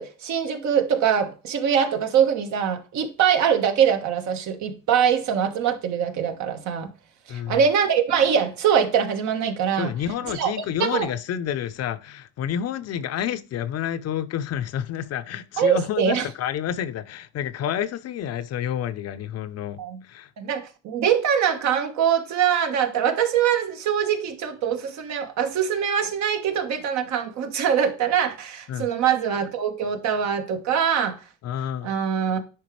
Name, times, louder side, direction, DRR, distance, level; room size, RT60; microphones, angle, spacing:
voice 1, 0.0-6.9 7.3-9.9 10.3-10.5 10.9-11.1 15.6-16.3 19.8-20.0 20.4-31.2 31.8-32.4, right 8 dB, 60° right, 1.4 m, -23 dB
voice 2, 7.3-7.6 9.8-19.8 20.0-20.3 28.7-28.9 31.4-31.9, left 9 dB, 50° left, 0.7 m, -29 dB
10.0 x 3.9 x 3.2 m
cardioid pair, 125°, 33 cm